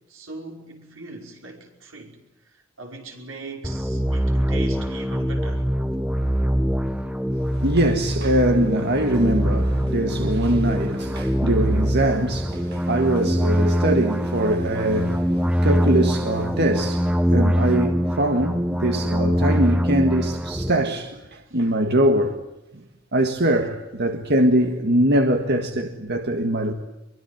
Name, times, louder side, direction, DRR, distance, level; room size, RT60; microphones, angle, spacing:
voice 1, 0.1-2.2 2.4-5.7 21.5-21.6, right 3 dB, 85° right, 5.5 m, -40 dB
sound 1, 3.6-20.7, equal, 5° right, 1.0 m, -23 dB
voice 2, 7.5-22.4 23.1-26.7, right 1 dB, 55° right, 1.8 m, -22 dB
24.0 x 24.0 x 9.4 m
head